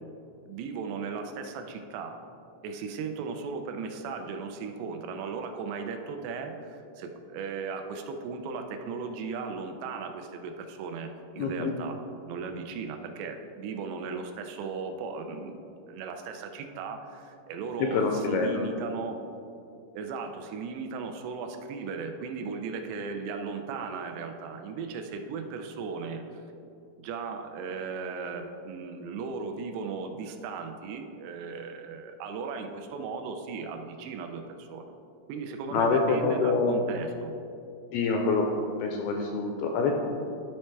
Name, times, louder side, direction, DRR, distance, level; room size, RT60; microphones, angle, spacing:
voice 1, 0.5-2.2 2.6-12.0 12.3-15.6 15.9-19.2 20.0-26.2 27.0-34.9 35.3-37.3, right 5 dB, 85° right, 5 dB, 2.8 m, -36 dB
voice 2, 11.4-11.7 17.9-18.7 35.7-36.8 37.9-38.5 38.8-39.9, left 4 dB, 85° left, 2 dB, 2.2 m, -26 dB
12.5 x 4.4 x 3.2 m, 2.6 s
omnidirectional pair, 4.7 m